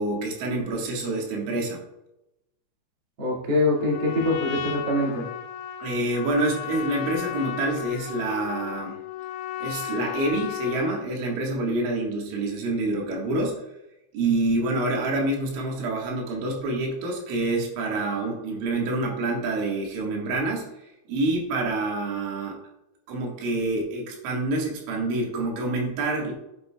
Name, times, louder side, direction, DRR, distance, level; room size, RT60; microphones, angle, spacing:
voice 1, 0.0-1.8 5.8-9.0 9.6-13.6 14.1-20.7 21.1-22.6 23.1-26.3, right 2 dB, 75° right, -1 dB, 4.0 m, -27 dB
voice 2, 3.2-5.2, left 2 dB, 45° right, -4 dB, 1.3 m, -24 dB
Trumpet, 3.8-11.1, left 10 dB, 85° left, 2.8 m, -34 dB
9.8 x 8.0 x 2.3 m, 0.87 s
omnidirectional pair, 5.6 m